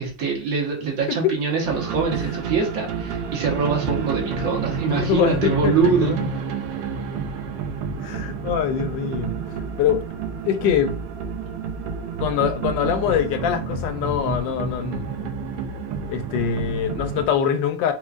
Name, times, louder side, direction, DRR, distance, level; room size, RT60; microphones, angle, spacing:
voice 1, 0.0-6.2, right 5 dB, 50° right, 1.4 m, -24 dB
sound 1, 1.6-17.3, right 5 dB, 70° right, 1.0 m, -29 dB
voice 2, 4.9-6.3 8.0-9.3 9.8-10.0 10.5-10.9 12.2-15.3 16.1-17.9, left 8 dB, 75° left, 1.2 m, -23 dB
4.4 x 2.4 x 2.4 m
omnidirectional pair, 2.1 m